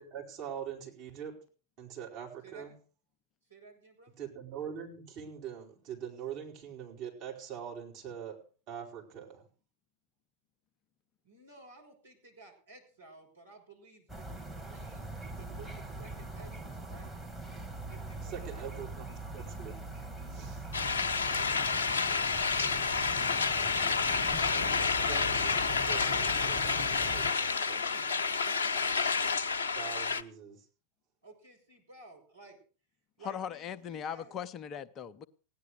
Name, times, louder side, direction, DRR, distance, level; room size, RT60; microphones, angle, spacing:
voice 1, 0.0-1.4 1.8-2.7 4.2-8.4 8.7-9.5 18.2-19.1 19.3-19.9 20.3-20.7 25.1-27.8 29.7-30.6, right 8 dB, 40° right, 4.5 m, -43 dB
voice 2, 2.4-2.7 3.4-4.2 11.2-15.0 15.4-17.1 17.9-18.8 27.4-29.0 31.2-32.6 33.2-34.3, right 3 dB, 75° right, 6.4 m, -55 dB
sound 1, 14.1-27.3, right 2 dB, ahead, 1.8 m, -42 dB
sound 2, 20.7-30.2, left 5 dB, 65° left, 0.9 m, -29 dB
voice 3, 33.2-35.3, left 8 dB, 30° left, 0.7 m, -39 dB
16.5 x 10.5 x 6.5 m
figure-of-eight pair, 90°, 0 cm